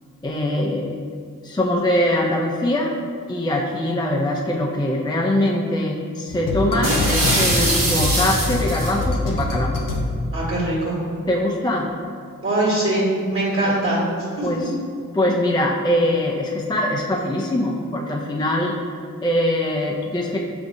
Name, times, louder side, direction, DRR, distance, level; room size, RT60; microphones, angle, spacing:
voice 1, 0.2-1.0 1.4-3.0 3.3-9.8 11.3-11.9 14.4-14.7 15.1-18.8 19.2-20.4, left 1 dB, 15° left, -2 dB, 0.3 m, -22 dB
sound 1, 6.3-10.5, left 2 dB, 80° left, 0.6 m, -24 dB
sound 2, 6.8-9.0, right 1 dB, 85° right, 1.2 m, -22 dB
voice 2, 10.3-11.0 12.4-13.0 13.3-14.0 14.4-14.5, right 1 dB, 40° right, -6 dB, 1.3 m, -22 dB
5.9 x 2.6 x 2.6 m, 2.2 s
cardioid pair, 55°, 32 cm